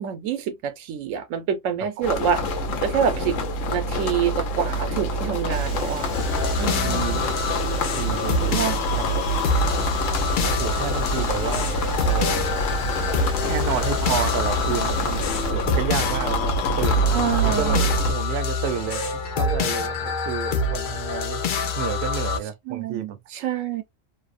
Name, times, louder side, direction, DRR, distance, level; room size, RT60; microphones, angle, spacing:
voice 1, 0.0-2.4 2.8-3.4 3.7-6.1 6.6-7.3 8.5-8.8 17.1-17.8 22.7-23.8, right 8 dB, 85° right, 1.0 m, -26 dB
sound 1, 2.0-18.1, equal, 80° left, 1.0 m, -26 dB
sound 2, 5.5-15.5, left 2 dB, 20° left, 0.7 m, -40 dB
sound 3, 6.1-22.4, left 3 dB, 60° left, 0.5 m, -26 dB
voice 2, 6.7-7.3 8.0-8.7 9.0-9.4 9.7-9.9 10.4-12.5 13.4-17.8 18.1-21.4 21.8-23.2, right 8 dB, 65° right, 0.7 m, -31 dB
2.6 x 2.0 x 2.4 m
omnidirectional pair, 1.3 m